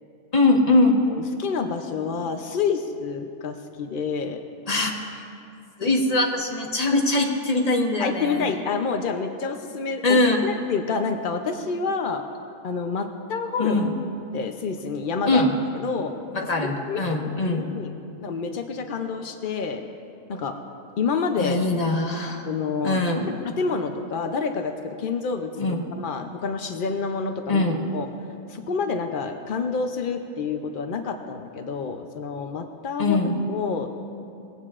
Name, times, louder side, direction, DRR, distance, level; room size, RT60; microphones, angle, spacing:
voice 1, 0.3-1.1 4.7-4.9 5.8-8.5 10.0-10.4 13.6-13.9 15.3-15.5 16.3-17.7 21.4-22.5 22.8-23.3 25.6-25.9 27.5-27.8 33.0-33.4, left 2 dB, 25° left, 0 dB, 1.2 m, -22 dB
voice 2, 1.1-4.4 5.8-5.9 8.0-12.2 12.6-13.8 14.3-15.4 15.8-16.1 16.6-17.9 18.2-19.8 20.3-20.6 21.0-21.6 22.5-23.0 23.4-25.5 26.0-27.6 27.9-28.1 28.5-33.2 33.5-33.9, left 5 dB, 75° left, 6 dB, 0.4 m, -28 dB
21.0 x 16.0 x 2.4 m, 2.6 s
omnidirectional pair, 1.7 m